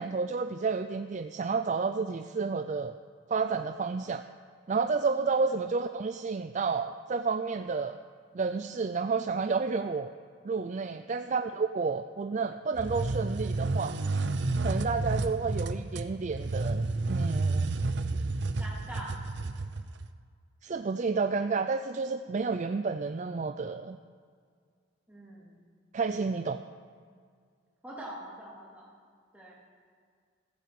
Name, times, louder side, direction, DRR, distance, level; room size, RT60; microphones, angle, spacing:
voice 1, 0.0-2.9 3.3-4.2 4.7-8.0 8.3-10.1 10.4-14.0 14.6-17.8 20.6-24.0 25.9-26.6, right 4 dB, 40° right, 9 dB, 0.4 m, -30 dB
sound 1, 12.8-20.1, right 3 dB, 60° right, 0.7 m, -31 dB
voice 2, 18.6-19.3 25.1-25.7 27.8-28.9 29.3-29.5, right 1 dB, 10° right, -4 dB, 3.1 m, -44 dB
15.0 x 8.2 x 7.7 m, 2.1 s
head